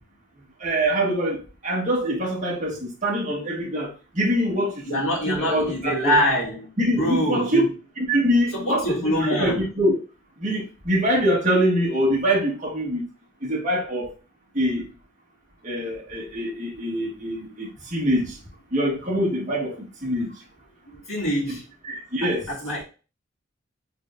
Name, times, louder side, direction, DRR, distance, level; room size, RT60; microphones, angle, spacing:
voice 1, 0.6-6.2 6.8-7.6 8.1-10.0 10.4-13.1 13.4-14.1 14.5-14.9 15.6-18.4 18.7-19.7 20.0-20.3 21.9-22.5, equal, 35° right, 1.5 m, -24 dB
voice 2, 4.9-7.7 8.5-9.7 20.9-21.6 22.2-22.8, equal, 85° left, 1.8 m, -25 dB
4.9 x 3.4 x 2.6 m
head